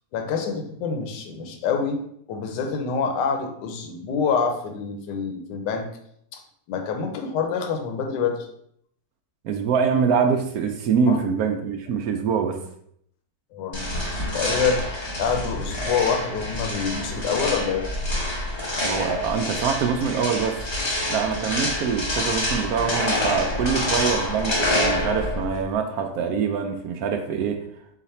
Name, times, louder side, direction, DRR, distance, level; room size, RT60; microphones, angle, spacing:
voice 1, 0.1-2.0 2.3-5.9 6.3-6.4 6.7-8.5 11.1-11.2 13.5-13.9 14.2-14.8 15.2-17.9, left 6 dB, 75° left, 4 dB, 1.3 m, -26 dB
voice 2, 9.4-12.6 18.8-20.6 21.1-27.6, right 6 dB, 70° right, 5 dB, 0.9 m, -24 dB
sound 1, 13.7-25.6, left 1 dB, 40° left, 0.3 m, -27 dB
4.8 x 2.5 x 4.1 m, 0.69 s
omnidirectional pair, 1.9 m